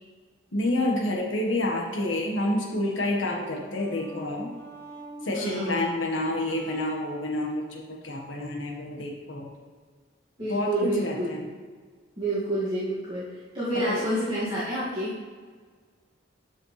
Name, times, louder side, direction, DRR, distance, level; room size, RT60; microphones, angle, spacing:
voice 1, 0.5-4.5 5.2-9.5 10.5-11.4 13.8-14.0, left 1 dB, 75° left, -1 dB, 1.5 m, -28 dB
sound 1, 2.1-7.1, right 2 dB, 10° left, 1.0 m, -44 dB
voice 2, 5.3-5.9 10.4-11.3 12.2-15.1, right 1 dB, 25° right, -12 dB, 2.2 m, -29 dB
12.0 x 5.5 x 3.3 m, 1.5 s
head